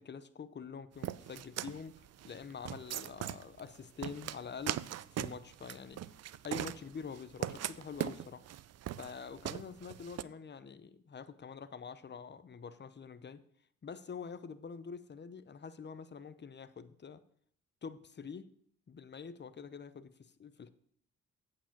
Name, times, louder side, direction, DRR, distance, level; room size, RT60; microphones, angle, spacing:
voice 1, 0.0-4.8 5.1-6.0 6.4-8.4 9.0-13.4 13.8-17.2 17.8-18.5 18.9-20.7, left 6 dB, 35° left, 14 dB, 0.7 m, -46 dB
sound 1, 1.0-10.2, right 12 dB, 60° right, 0.4 m, -40 dB
8.4 x 4.9 x 7.4 m, 0.64 s
supercardioid pair, 55°, 30 cm